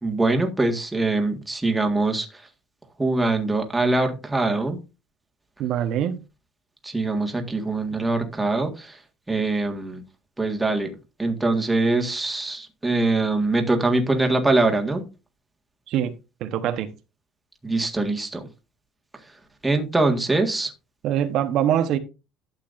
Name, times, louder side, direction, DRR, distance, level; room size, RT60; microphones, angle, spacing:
voice 1, 0.0-2.4 3.0-4.8 6.8-9.0 9.3-10.0 10.4-10.9 11.2-15.0 17.6-18.5 19.6-20.7, right 2 dB, 10° right, 1.8 m, -23 dB
voice 2, 5.6-6.2 15.9-16.1 16.4-16.9 21.0-22.0, right 10 dB, 60° right, 1.1 m, -23 dB
12.0 x 8.3 x 2.6 m
cardioid pair, 155°, 0 cm